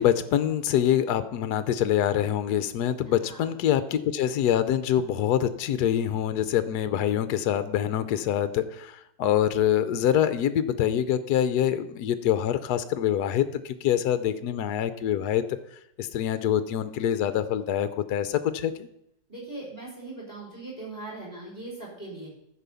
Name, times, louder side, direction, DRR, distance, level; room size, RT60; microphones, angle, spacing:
voice 1, 0.0-15.4 16.0-18.9, left 10 dB, 70° left, 12 dB, 1.1 m, -25 dB
voice 2, 19.3-22.3, right 2 dB, 10° right, -3 dB, 5.5 m, -40 dB
14.0 x 4.9 x 6.8 m, 0.78 s
omnidirectional pair, 2.0 m